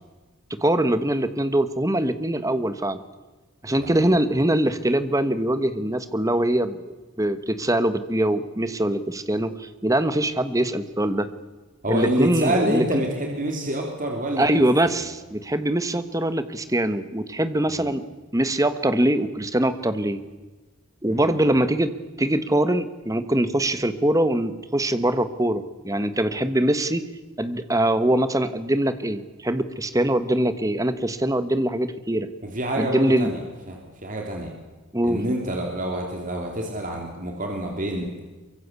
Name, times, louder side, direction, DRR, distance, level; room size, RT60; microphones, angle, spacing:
voice 1, 0.5-3.0 3.6-6.8 7.2-11.3 11.9-12.8 14.4-18.0 18.3-20.2 21.0-27.0 27.4-32.3 32.8-33.3 34.9-35.2, right 1 dB, 15° right, 11 dB, 1.2 m, -23 dB
voice 2, 3.8-4.2 11.8-14.5 14.8-15.0 17.7-17.9 21.1-21.5 32.4-33.4 33.7-34.5 35.0-38.1, right 1 dB, 35° right, 1 dB, 3.5 m, -27 dB
24.0 x 23.5 x 8.3 m, 1.2 s
head